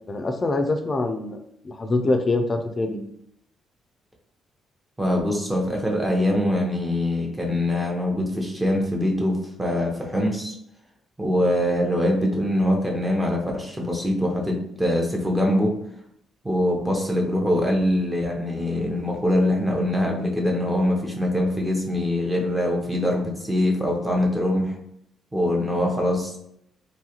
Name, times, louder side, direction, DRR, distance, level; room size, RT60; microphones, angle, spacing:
voice 1, 0.1-1.4 1.6-3.1, left 2 dB, 35° left, 6 dB, 0.4 m, -24 dB
voice 2, 5.0-10.5 11.2-15.8 16.4-24.8 25.3-26.4, left 1 dB, 10° right, 0 dB, 0.7 m, -23 dB
3.0 x 2.3 x 2.9 m, 0.72 s
cardioid pair, 90°, 0 cm